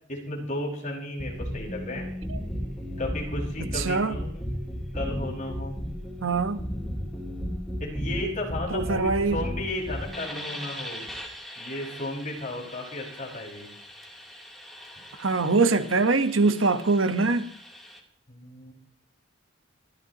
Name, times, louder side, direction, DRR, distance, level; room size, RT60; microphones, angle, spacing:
voice 1, 0.1-2.1 3.0-4.4 4.9-5.8 7.8-11.1 11.6-13.7 18.3-18.7, left 1 dB, 40° left, 5.6 m, -34 dB
sound 1, 1.2-18.0, equal, ahead, 3.1 m, -36 dB
voice 2, 3.7-4.2 6.2-6.6 8.7-9.4 15.2-17.5, right 3 dB, 75° right, 1.2 m, -23 dB
26.5 x 13.5 x 3.0 m
head